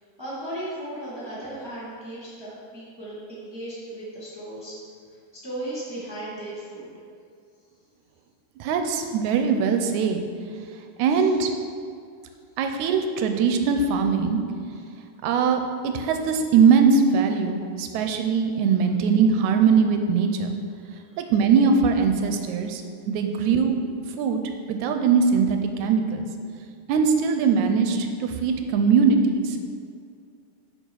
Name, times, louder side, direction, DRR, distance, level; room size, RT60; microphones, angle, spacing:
voice 1, 0.2-4.7 5.4-6.9 11.1-11.3 20.9-21.3, right 1 dB, 10° right, -9 dB, 1.4 m, -36 dB
voice 2, 8.6-10.2 11.0-11.6 12.6-14.4 15.2-20.6 21.3-23.8 24.2-24.4 24.7-26.3 26.9-29.6, right 5 dB, 80° right, 6 dB, 1.9 m, -21 dB
7.9 x 4.4 x 6.3 m, 2.3 s
omnidirectional pair, 3.6 m